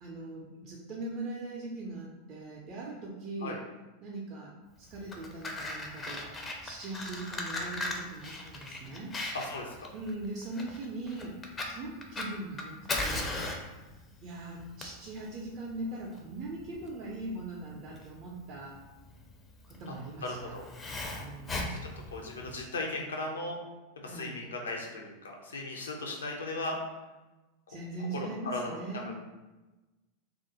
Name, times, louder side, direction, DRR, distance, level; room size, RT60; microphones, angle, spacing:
voice 1, 0.0-3.6 4.0-6.3 6.6-9.1 9.9-11.4 11.6-13.5 14.2-18.8 19.7-20.6 21.2-21.7 24.0-24.4 27.7-29.1, right 2 dB, 40° right, -4 dB, 0.4 m, -40 dB
Fire, 4.9-22.6, left 2 dB, 20° left, 0.4 m, -38 dB
voice 2, 9.3-9.9 20.2-20.7 21.7-21.8 22.1-23.6 24.0-26.8 27.7-27.8 28.1-29.1, left 2 dB, 75° left, 1 dB, 0.5 m, -37 dB
2.3 x 2.1 x 2.8 m, 1.1 s
figure-of-eight pair, 90°, 0 cm